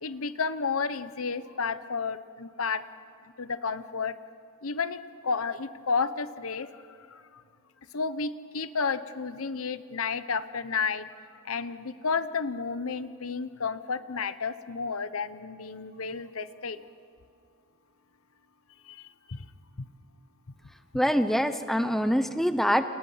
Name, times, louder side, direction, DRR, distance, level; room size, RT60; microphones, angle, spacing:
voice 1, 0.0-2.8 3.4-4.2 4.6-6.7 7.1-7.4 7.9-16.8 18.9-19.5 19.8-19.9, left 5 dB, 75° left, 13 dB, 0.9 m, -32 dB
voice 2, 20.9-22.9, equal, ahead, 9 dB, 0.7 m, -24 dB
29.5 x 28.5 x 5.7 m, 2.3 s
head